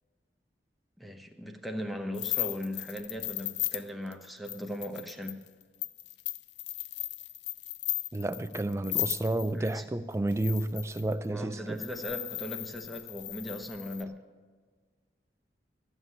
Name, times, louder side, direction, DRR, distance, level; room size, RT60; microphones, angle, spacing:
voice 1, 1.0-5.5 9.5-9.9 11.3-14.2, equal, ahead, 0.9 m, -38 dB
sound 1, 2.1-9.7 10.3-11.1 11.8-14.0, left 16 dB, 75° left, 0.4 m, -36 dB
voice 2, 8.1-11.8, right 1 dB, 15° right, 0.4 m, -31 dB
14.0 x 7.4 x 9.6 m
head